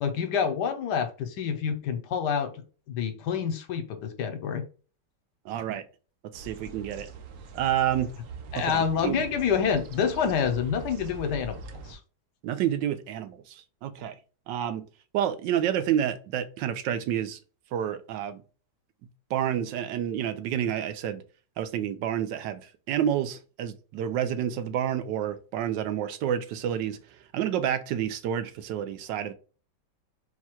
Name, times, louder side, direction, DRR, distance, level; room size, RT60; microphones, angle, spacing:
voice 1, 0.0-4.6 8.5-12.0, left 7 dB, 75° left, 1.3 m, -28 dB
voice 2, 5.5-5.8 6.3-7.1 7.5-8.1 8.6-9.2 12.4-14.2 14.5-14.9 15.1-17.4 17.7-18.4 19.3-21.2 21.6-27.0 27.3-29.3, right 10 dB, 85° right, 1.3 m, -29 dB
sound 1, 6.3-12.0, right 4 dB, 65° right, 1.1 m, -43 dB
4.5 x 2.3 x 4.2 m
omnidirectional pair, 1.9 m